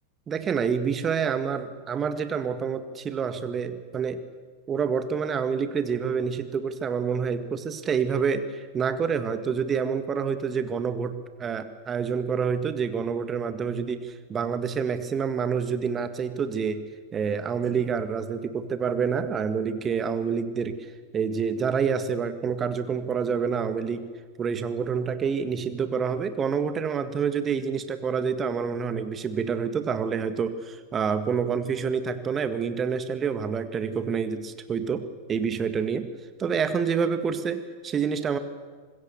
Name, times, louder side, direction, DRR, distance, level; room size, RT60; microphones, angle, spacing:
voice 1, 0.3-4.3 4.7-16.9 17.1-20.9 21.1-24.1 24.4-36.1 36.4-38.4, right 6 dB, 25° right, 10 dB, 1.8 m, -27 dB
25.5 x 21.5 x 7.1 m, 1.5 s
figure-of-eight pair, 90°, 0 cm